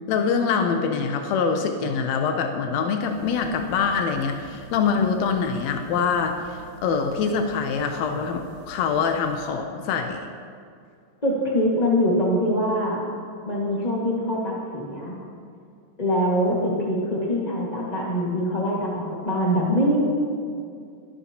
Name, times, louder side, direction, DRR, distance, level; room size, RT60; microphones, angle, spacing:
voice 1, 0.1-10.2, left 5 dB, 85° left, 4 dB, 1.5 m, -24 dB
sound 1, 3.0-9.5, right 1 dB, 45° right, 2.9 m, -47 dB
voice 2, 11.2-13.0 13.5-15.2 16.0-20.0, equal, 65° left, -5 dB, 0.4 m, -23 dB
21.0 x 11.5 x 2.9 m, 2.3 s
omnidirectional pair, 4.0 m